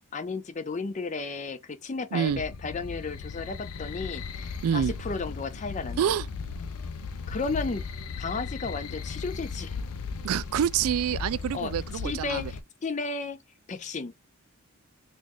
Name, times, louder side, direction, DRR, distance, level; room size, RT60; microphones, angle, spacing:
voice 1, 0.1-6.2 7.3-7.9 8.2-9.8 11.5-13.4 13.7-14.1, left 4 dB, 30° left, 0.4 m, -34 dB
voice 2, 2.1-2.4 4.6-4.9 6.0-6.3 10.2-12.5, right 9 dB, 80° right, 0.3 m, -27 dB
sound 1, 2.3-12.6, left 5 dB, 80° left, 0.5 m, -36 dB
3.9 x 2.5 x 3.1 m
head